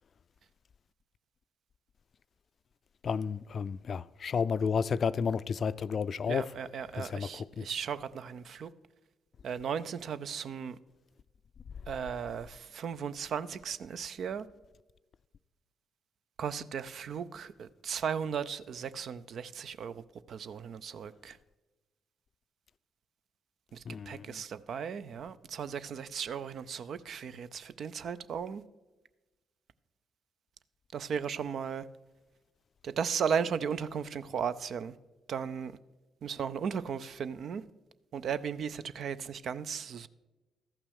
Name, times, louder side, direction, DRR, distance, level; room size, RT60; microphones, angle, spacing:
voice 1, 3.0-6.5 7.0-7.7 23.9-24.4, left 6 dB, 55° left, 0.3 m, -32 dB
voice 2, 6.3-8.7 9.4-10.8 11.9-14.5 16.4-21.4 23.7-28.6 30.9-31.9 32.8-35.0 35.3-35.8 36.2-37.6 38.1-40.1, right 7 dB, 60° right, 0.4 m, -36 dB
13.5 x 5.9 x 6.4 m
supercardioid pair, 55°, 0 cm